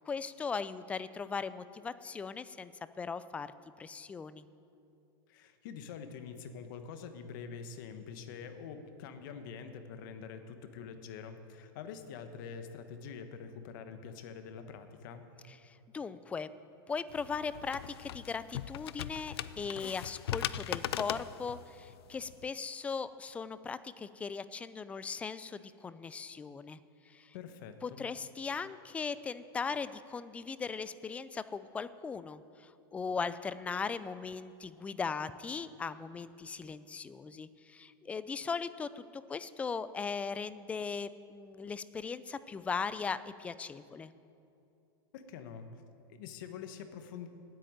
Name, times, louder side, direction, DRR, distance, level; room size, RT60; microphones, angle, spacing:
voice 1, 0.1-2.7 3.0-3.5 3.8-4.5 15.6-16.5 16.9-26.8 27.1-27.3 27.8-44.1, left 5 dB, 10° left, 15 dB, 0.3 m, -38 dB
voice 2, 5.3-15.3 27.3-28.0 45.1-45.8 46.1-47.3, left 6 dB, 60° left, 8 dB, 1.2 m, -45 dB
sound 1, 17.1-22.5, left 11 dB, 85° left, 0.4 m, -40 dB
9.3 x 8.6 x 9.0 m, 2.7 s
supercardioid pair, 145°, 13 cm